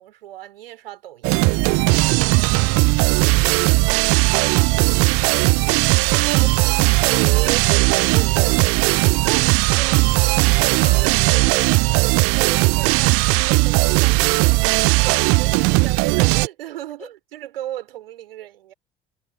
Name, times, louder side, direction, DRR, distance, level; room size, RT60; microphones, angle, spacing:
voice 1, 0.0-1.6 4.3-5.2 7.0-9.5 9.8-10.0 12.4-18.7, right 13 dB, 70° right, 3.3 m, -35 dB
sound 1, 1.2-16.5, right 27 dB, 50° right, 0.6 m, -17 dB
voice 2, 1.8-4.6 5.1-7.2 9.3-9.6 9.9-12.3 15.6-15.9 17.0-17.1, left 5 dB, 80° left, 7.8 m, -44 dB
figure-of-eight pair, 55°, 29 cm